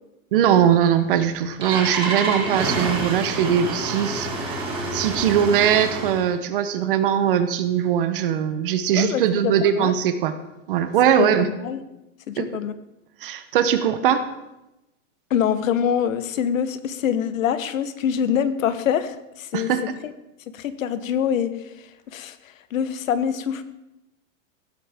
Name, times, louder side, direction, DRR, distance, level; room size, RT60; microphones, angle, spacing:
voice 1, 0.3-4.7 4.9-10.3 10.7-11.5 12.4-12.5 13.2-14.3 19.5-19.9, right 9 dB, 40° right, 10 dB, 0.9 m, -21 dB
Engine starting, 1.1-6.3, right 2 dB, 15° right, 1.9 m, -28 dB
voice 2, 8.9-9.9 11.2-11.8 12.3-12.7 15.3-19.7 20.0-20.1 20.5-21.5 22.1-22.3 22.7-23.6, left 8 dB, 75° left, 12 dB, 1.2 m, -24 dB
16.0 x 13.0 x 3.6 m, 0.96 s
supercardioid pair, 180°, 40 cm